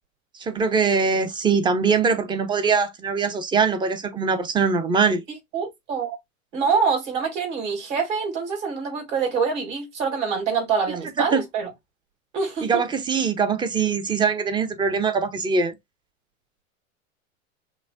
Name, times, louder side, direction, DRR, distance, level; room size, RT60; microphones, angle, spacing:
voice 1, 0.4-5.2 11.2-11.4 12.6-15.7, right 5 dB, 10° right, 0.5 m, -22 dB
voice 2, 5.5-6.2 6.5-11.7 12.3-12.8, right 5 dB, 60° right, 2.8 m, -25 dB
6.0 x 2.1 x 2.3 m
hypercardioid pair, 100°, 41 cm